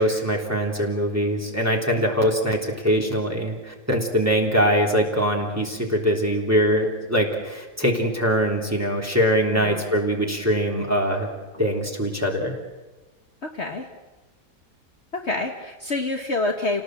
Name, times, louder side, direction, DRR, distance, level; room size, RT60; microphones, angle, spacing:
voice 1, 0.0-11.3 11.6-12.6, equal, 10° right, -1 dB, 3.4 m, -22 dB
voice 2, 13.4-13.9 15.1-16.8, left 2 dB, 45° left, 2 dB, 1.7 m, -27 dB
29.0 x 18.0 x 7.7 m, 1.2 s
omnidirectional pair, 1.7 m